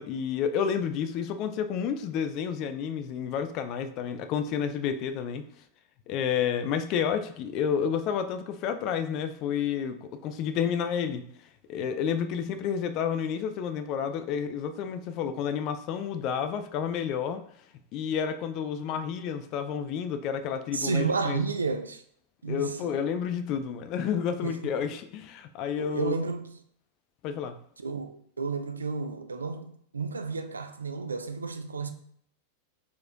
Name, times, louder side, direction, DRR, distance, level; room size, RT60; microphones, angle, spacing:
voice 1, 0.0-5.5 6.1-11.2 11.7-17.4 17.9-21.4 22.5-26.1 27.2-27.6, left 7 dB, 40° left, 0.4 m, -30 dB
voice 2, 20.7-22.0 22.4-23.0 24.4-24.7 25.8-26.6 27.8-31.9, right 4 dB, 75° right, 0.4 m, -32 dB
4.3 x 4.3 x 2.4 m
figure-of-eight pair, 90°, 0 cm